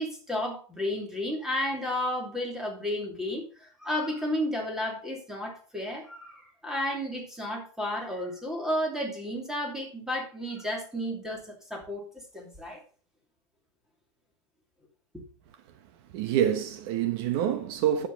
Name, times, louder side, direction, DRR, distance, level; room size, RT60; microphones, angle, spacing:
voice 1, 0.0-12.8, left 1 dB, 5° right, 2.9 m, -32 dB
voice 2, 16.1-18.1, right 10 dB, 55° right, 1.0 m, -26 dB
10.0 x 7.7 x 4.1 m
supercardioid pair, 155°, 15 cm